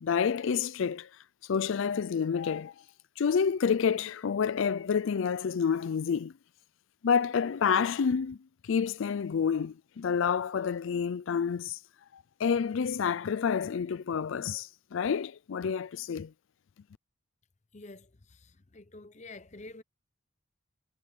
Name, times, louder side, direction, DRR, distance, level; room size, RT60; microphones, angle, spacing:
voice 1, 0.0-1.1 1.4-2.7 3.2-6.3 7.0-8.4 8.6-11.8 12.1-16.3, left 6 dB, 70° left, 0.4 m, -29 dB
voice 2, 17.7-19.8, left 2 dB, 35° left, 0.7 m, -48 dB
head